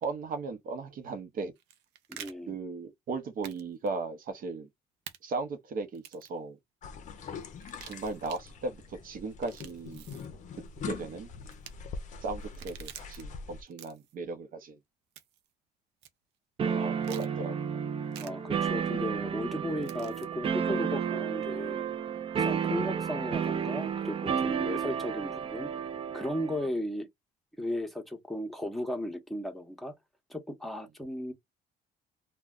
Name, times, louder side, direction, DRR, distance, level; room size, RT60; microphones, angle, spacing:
voice 1, 0.0-1.5 2.5-4.7 5.2-6.6 7.8-10.0 10.8-11.3 12.2-14.8 16.6-17.6, right 3 dB, 55° right, 0.8 m, -37 dB
sound 1, 1.6-2.3 3.4-3.6 3.9-4.0 5.1-5.2 5.9-6.4 7.6-8.4 9.3-10.3 11.5-11.7 12.4-13.2 13.7-14.1 15.2-15.5 16.0-16.1 17.0-17.3 18.1-18.3 19.8-20.3, right 10 dB, 85° right, 0.5 m, -47 dB
voice 2, 2.1-2.6 18.2-21.8 22.4-25.7 26.1-27.1 27.6-29.9 30.3-31.3, left 1 dB, ahead, 0.8 m, -35 dB
sound 2, 6.8-13.6, left 5 dB, 45° left, 0.5 m, -43 dB
sound 3, 16.6-26.7, right 7 dB, 35° right, 0.4 m, -32 dB
2.2 x 2.2 x 3.6 m
cardioid pair, 110°, 17 cm